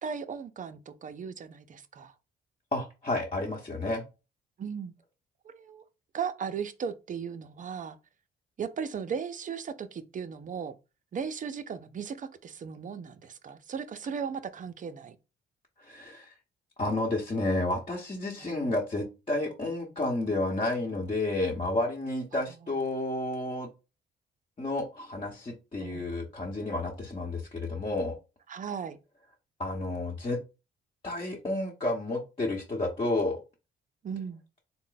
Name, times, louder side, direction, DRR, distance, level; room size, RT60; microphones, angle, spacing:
voice 1, 0.0-2.1 4.6-4.9 5.4-5.8 6.1-8.0 8.6-10.7 11.1-15.2 18.4-18.6 25.8-26.1 28.5-29.0 34.0-34.4, right 6 dB, 40° right, 0.5 m, -37 dB
voice 2, 2.7-4.0 15.8-16.3 16.8-23.7 24.6-28.1 29.6-30.4 31.0-33.4, left 2 dB, 30° left, 1.0 m, -31 dB
3.7 x 2.1 x 3.9 m
cardioid pair, 90°, 20 cm